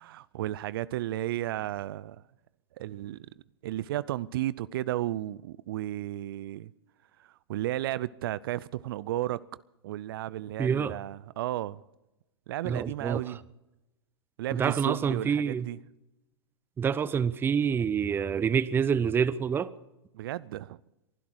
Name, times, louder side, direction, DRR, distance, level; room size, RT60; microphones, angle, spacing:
voice 1, 0.0-2.2 2.8-3.3 3.6-6.7 7.2-11.8 12.5-13.4 14.4-15.8 20.1-20.8, right 14 dB, 60° right, 0.5 m, -33 dB
voice 2, 10.6-11.0 12.6-13.4 14.5-15.7 16.8-19.7, right 7 dB, 15° right, 0.6 m, -27 dB
23.0 x 12.0 x 4.7 m
hypercardioid pair, 110°, 14 cm